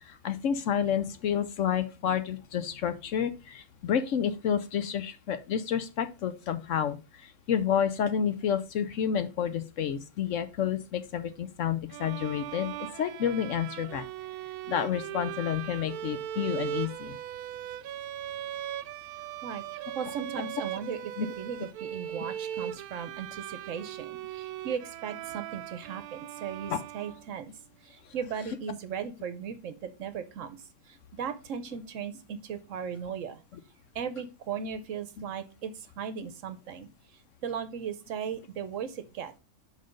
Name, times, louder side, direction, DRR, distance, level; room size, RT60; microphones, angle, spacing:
voice 1, 0.0-14.1 14.7-17.2 21.2-21.3 26.7-26.8, left 8 dB, 65° left, 11 dB, 0.9 m, -30 dB
sound 1, 11.9-27.6, right 11 dB, 90° right, 1.1 m, -39 dB
voice 2, 19.4-21.0 21.4-27.5 27.8-33.4 33.9-39.3, right 7 dB, 65° right, 11 dB, 1.0 m, -37 dB
5.8 x 5.3 x 5.1 m, 0.31 s
omnidirectional pair, 1.5 m